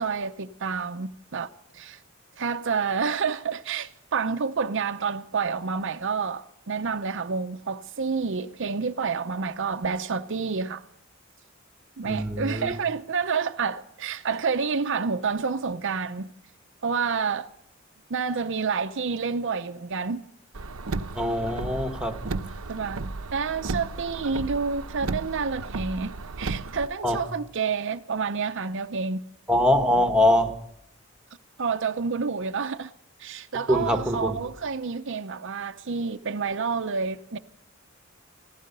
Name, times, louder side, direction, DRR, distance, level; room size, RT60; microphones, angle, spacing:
voice 1, 0.0-2.0 2.4-10.8 12.0-16.3 16.8-17.5 18.1-20.2 22.7-23.0 23.3-29.2 31.6-32.9 33.2-37.4, right 5 dB, 65° right, 0.7 m, -29 dB
voice 2, 12.0-12.7 21.1-22.2 27.0-27.2 29.5-30.5 33.7-34.4, left 1 dB, 5° right, 1.5 m, -23 dB
Car, 20.5-26.9, right 3 dB, 90° right, 0.8 m, -34 dB
16.0 x 15.0 x 5.4 m
head